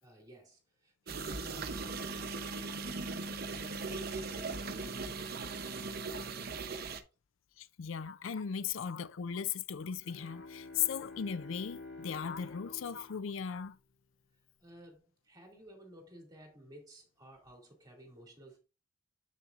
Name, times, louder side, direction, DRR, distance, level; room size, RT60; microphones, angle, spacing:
voice 1, 0.0-5.4 6.0-6.8 14.6-18.6, right 1 dB, 20° right, 2.3 m, -55 dB
sound 1, 1.1-7.0, right 3 dB, 50° right, 0.7 m, -39 dB
voice 2, 7.6-13.8, left 7 dB, 90° left, 0.4 m, -37 dB
Bowed string instrument, 9.9-14.5, left 3 dB, 65° left, 1.8 m, -50 dB
7.5 x 6.8 x 2.5 m
head